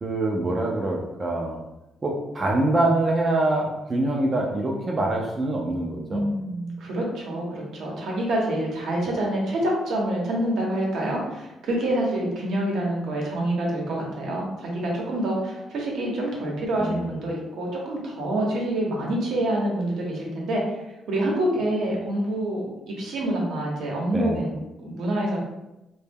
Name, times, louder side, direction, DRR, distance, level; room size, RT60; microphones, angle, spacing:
voice 1, 0.0-1.6 2.0-6.3 16.8-17.1 24.1-24.4, right 2 dB, 30° right, -1 dB, 0.4 m, -25 dB
voice 2, 6.1-20.8 21.1-24.5 24.8-25.4, right 1 dB, 75° right, -2 dB, 0.7 m, -27 dB
2.1 x 2.0 x 3.4 m, 0.95 s
cardioid pair, 90°, 0 cm